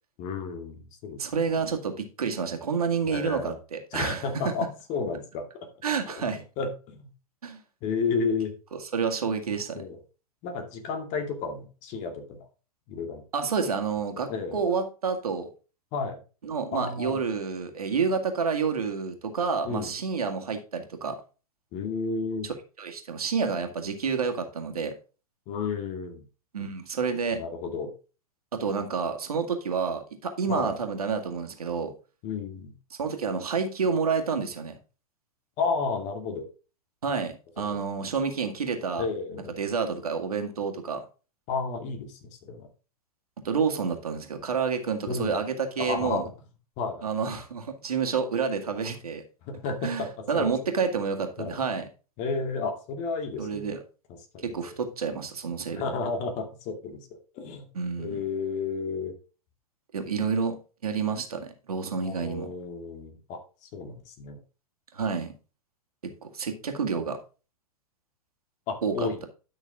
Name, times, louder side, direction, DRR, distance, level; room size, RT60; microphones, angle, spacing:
voice 1, 0.2-1.4 3.1-3.6 3.9-5.5 6.1-7.1 7.8-8.5 9.8-10.0 10.4-12.5 12.9-13.2 14.3-14.6 15.9-16.2 16.7-17.2 19.6-19.9 21.7-22.5 25.5-26.2 27.4-27.9 30.5-30.7 32.2-32.7 35.6-36.5 39.0-39.6 41.5-42.7 45.1-45.4 45.8-46.2 46.8-47.1 49.4-50.1 50.3-50.5 51.4-51.6 52.2-53.8 54.3-54.6 55.7-57.1 57.3-57.7 58.0-59.1 62.0-64.4 68.7-69.3, left 4 dB, 40° left, 6 dB, 2.4 m, -32 dB
voice 2, 1.2-4.5 5.8-6.4 7.4-7.6 8.7-9.8 13.3-15.5 16.4-21.2 22.4-24.9 26.5-27.4 28.5-31.9 32.9-34.8 37.0-39.1 39.6-41.0 43.4-46.2 47.0-49.2 49.8-51.9 53.4-53.8 54.4-55.8 57.7-58.2 59.9-60.6 60.8-62.5 64.9-65.3 66.0-67.2 68.8-69.3, right 5 dB, 75° right, 5 dB, 2.1 m, -29 dB
11.5 x 6.1 x 3.6 m, 0.33 s
figure-of-eight pair, 105°, 19 cm